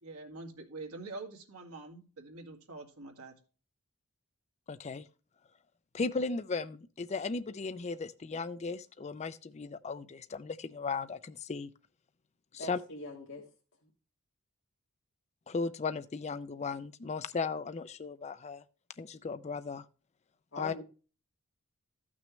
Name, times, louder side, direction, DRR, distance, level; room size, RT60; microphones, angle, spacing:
voice 1, 0.0-3.3, right 3 dB, 85° right, 2.1 m, -45 dB
voice 2, 4.7-5.1 5.9-11.7 12.5-12.8 15.5-18.6 19.0-19.9 20.6-20.7, left 4 dB, 30° left, 0.4 m, -36 dB
voice 3, 12.6-13.5 13.8-13.9 20.5-20.8, left 2 dB, 55° left, 1.7 m, -43 dB
14.0 x 6.2 x 3.1 m
head